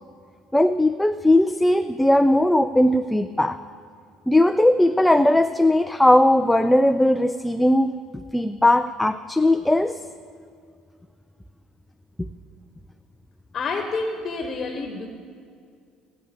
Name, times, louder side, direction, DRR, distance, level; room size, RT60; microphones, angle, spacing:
voice 1, 0.5-3.6 4.3-9.9, left 1 dB, 5° left, 9 dB, 0.4 m, -18 dB
voice 2, 13.5-15.1, left 3 dB, 35° left, 4 dB, 1.1 m, -28 dB
17.5 x 8.8 x 5.1 m, 2.3 s
cardioid pair, 115°, 0 cm